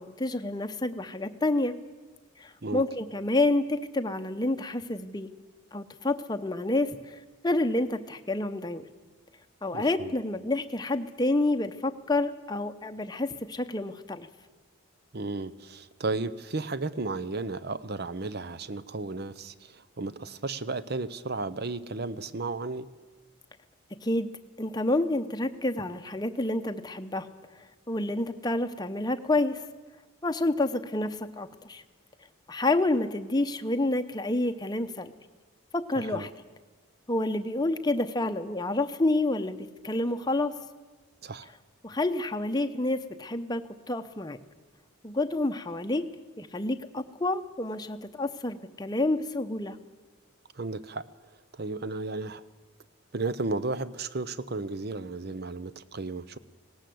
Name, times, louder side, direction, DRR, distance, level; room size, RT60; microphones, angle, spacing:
voice 1, 0.0-1.7 2.4-5.3 5.7-7.2 7.4-8.8 9.6-14.3 24.0-24.3 24.6-27.3 27.6-29.6 30.2-31.8 32.5-35.1 35.7-36.3 37.1-40.5 41.8-44.4 45.0-46.1 46.4-49.8, left 2 dB, 20° left, 8 dB, 0.8 m, -29 dB
voice 2, 9.7-10.1 15.1-22.9 36.0-36.3 41.2-41.5 50.5-51.1 51.5-52.4 53.1-56.4, right 3 dB, 50° right, 15 dB, 0.7 m, -34 dB
18.5 x 18.0 x 7.8 m, 1.3 s
head